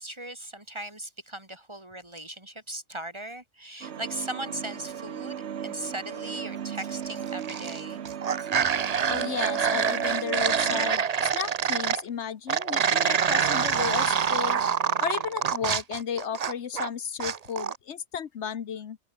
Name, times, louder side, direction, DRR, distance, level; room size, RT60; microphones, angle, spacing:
voice 1, 0.0-8.0 8.4-8.5, right 1 dB, 25° right, 3.2 m, -39 dB
sound 1, 3.8-10.9, right 8 dB, 70° right, 1.2 m, -35 dB
sound 2, 7.2-7.8 8.0-12.0 12.5-16.9 17.2-17.8, right 7 dB, 40° right, 0.7 m, -26 dB
voice 2, 9.1-14.6 15.0-19.0, left 7 dB, 80° left, 1.3 m, -34 dB
open air
omnidirectional pair, 1.2 m